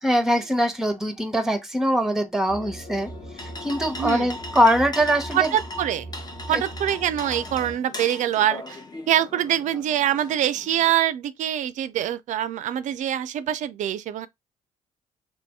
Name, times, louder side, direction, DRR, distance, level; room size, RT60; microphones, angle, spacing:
voice 1, 0.0-3.1 3.4-5.5 6.5-6.6, equal, 5° right, 0.9 m, -22 dB
sound 1, 2.5-7.8, right 1 dB, 45° left, 1.3 m, -39 dB
sound 2, 2.9-10.9, left 2 dB, 25° left, 0.8 m, -39 dB
voice 2, 4.0-4.3 5.3-6.1 6.5-8.8 9.1-14.3, right 11 dB, 60° right, 0.4 m, -24 dB
3.0 x 2.6 x 3.3 m
hypercardioid pair, 45°, 15 cm